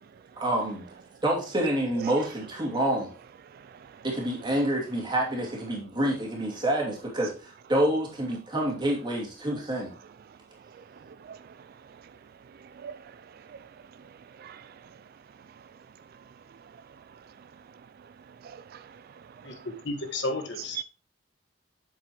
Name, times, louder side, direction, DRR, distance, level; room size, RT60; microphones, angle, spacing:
voice 1, 0.4-0.8 1.2-3.1 4.0-9.9, right 1 dB, 25° right, 2.6 m, -27 dB
voice 2, 3.5-4.0 10.8-11.5 11.9-12.0 12.7-13.7 14.4-14.9 18.4-19.7 20.8-20.9, right 8 dB, 50° right, 0.3 m, -45 dB
voice 3, 19.8-20.8, left 2 dB, 65° left, 1.5 m, -32 dB
7.9 x 7.4 x 3.0 m
head